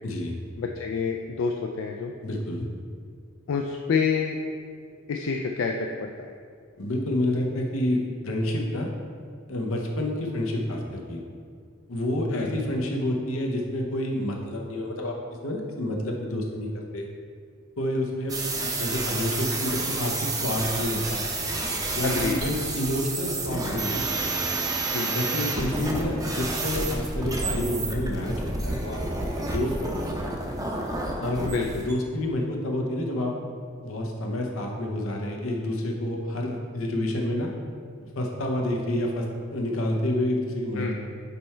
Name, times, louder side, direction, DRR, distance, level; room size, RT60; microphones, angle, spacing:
voice 1, 0.0-0.4 2.2-2.7 6.8-8.9 9.5-11.2 11.9-15.1 15.4-17.1 17.8-21.3 21.9-24.6 25.1-28.3 28.6-30.3 31.2-33.3 33.8-37.5 38.2-41.0, left 1 dB, 85° left, 1 dB, 0.9 m, -29 dB
voice 2, 0.6-2.1 3.5-4.4 5.1-6.3 12.3-12.5 22.0-22.4 24.9-25.1 31.5-31.9 40.8-41.0, left 5 dB, 65° left, 2 dB, 0.3 m, -28 dB
sound 1, 18.3-31.9, right 2 dB, 15° right, 0.6 m, -30 dB
5.4 x 4.3 x 4.4 m, 2.1 s
head